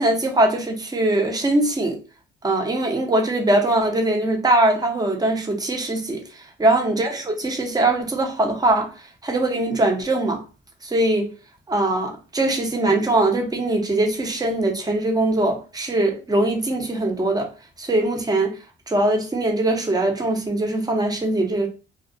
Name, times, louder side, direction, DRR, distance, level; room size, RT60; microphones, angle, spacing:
voice 1, 0.0-2.0 2.4-6.2 6.6-8.9 9.2-10.4 10.8-11.3 11.7-17.5 17.8-18.5 18.9-21.7, right 2 dB, 20° right, 0.7 m, -21 dB
2.3 x 2.3 x 2.6 m
cardioid pair, 90°, 20 cm